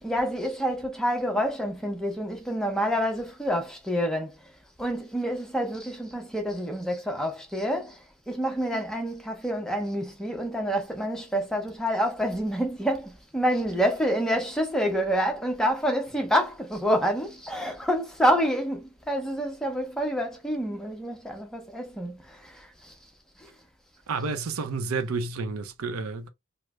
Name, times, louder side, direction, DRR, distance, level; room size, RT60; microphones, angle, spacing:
voice 1, 0.0-4.5 4.8-23.0 23.4-23.5, equal, 5° left, 0.6 m, -28 dB
voice 2, 24.1-26.3, right 4 dB, 75° right, 0.5 m, -30 dB
3.2 x 2.0 x 3.5 m
head